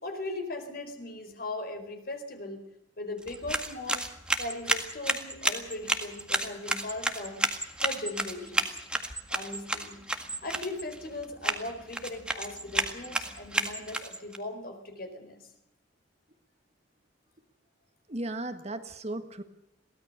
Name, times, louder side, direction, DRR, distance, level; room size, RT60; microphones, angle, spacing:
voice 1, 0.0-2.6 3.0-4.1 4.4-7.4 7.8-8.8 9.3-10.0 10.4-15.4, left 2 dB, 55° left, 6 dB, 4.5 m, -38 dB
sound 1, 3.2-14.4, right 1 dB, 5° right, 1.8 m, -32 dB
voice 2, 18.1-19.4, right 1 dB, 35° right, 8 dB, 1.7 m, -35 dB
23.0 x 17.0 x 6.7 m, 0.86 s
head